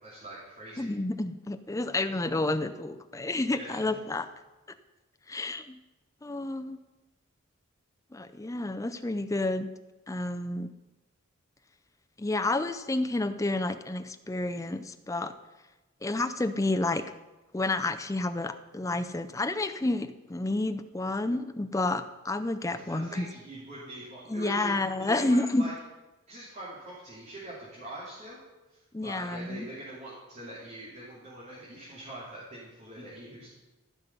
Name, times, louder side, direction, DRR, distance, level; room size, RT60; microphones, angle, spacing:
voice 1, 0.0-0.9 3.5-4.2 22.7-25.7 26.3-28.4 28.7-33.5, right 1 dB, 35° right, -7 dB, 2.7 m, -43 dB
voice 2, 0.8-4.3 5.3-5.8 6.2-6.8 8.1-9.7 10.1-10.7 12.2-15.3 16.0-17.1 17.5-23.3 24.3-25.6 28.9-29.7, left 2 dB, 15° left, 9 dB, 0.5 m, -30 dB
14.5 x 6.0 x 5.4 m, 1.1 s
head